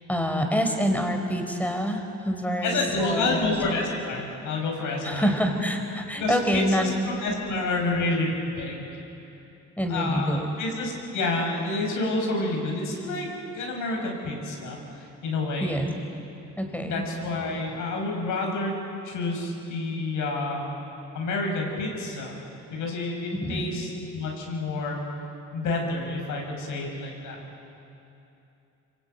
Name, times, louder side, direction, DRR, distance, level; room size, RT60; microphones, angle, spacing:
voice 1, 0.1-3.5 5.0-6.9 9.8-10.6 13.8-14.0 15.6-15.9 16.6-16.9 23.3-23.6, equal, 5° left, 4 dB, 4.4 m, -26 dB
voice 2, 2.6-5.3 6.1-8.8 9.9-13.3 13.5-15.8 16.8-18.7 19.0-20.6 21.1-22.4 22.7-25.0 25.5-27.4, left 2 dB, 80° left, 1 dB, 6.8 m, -29 dB
26.0 x 23.5 x 9.3 m, 2.8 s
cardioid pair, 90°, 30 cm